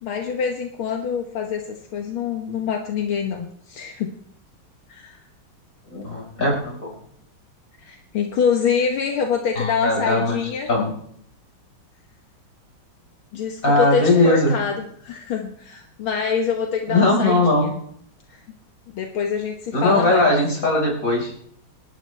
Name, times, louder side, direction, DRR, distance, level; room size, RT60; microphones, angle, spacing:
voice 1, 0.0-4.1 4.9-5.2 7.8-10.7 13.3-17.8 18.3-18.4 18.9-20.3, left 6 dB, 75° left, 3 dB, 2.1 m, -25 dB
voice 2, 5.9-7.0 9.6-10.4 10.7-10.9 13.6-14.5 16.9-17.7 19.7-21.3, left 2 dB, 40° left, -2 dB, 5.4 m, -19 dB
27.5 x 12.5 x 3.3 m, 0.66 s
omnidirectional pair, 2.3 m